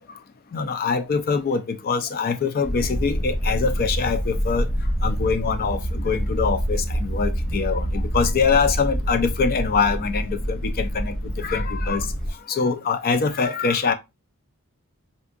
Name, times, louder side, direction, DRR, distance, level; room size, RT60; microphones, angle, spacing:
voice 1, 0.5-4.7 5.0-12.1 12.5-13.9, left 5 dB, 40° left, 0.4 m, -24 dB
sound 1, 2.6-12.3, equal, 60° left, 1.1 m, -26 dB
3.4 x 2.8 x 2.4 m
head